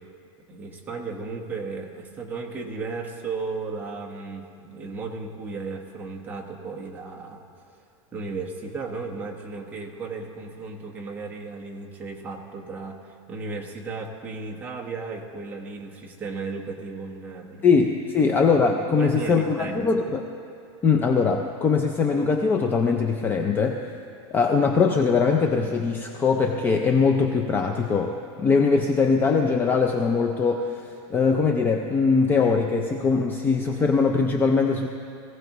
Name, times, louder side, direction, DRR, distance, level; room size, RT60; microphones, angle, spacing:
voice 1, 0.5-7.4 8.1-17.7 18.2-18.3 19.0-19.9, right 4 dB, 10° right, 0 dB, 1.1 m, -35 dB
voice 2, 17.6-20.2 20.8-23.9 24.3-34.9, left 5 dB, 15° left, 3 dB, 0.4 m, -21 dB
22.0 x 16.0 x 3.0 m, 2.7 s
supercardioid pair, 170°, 15 cm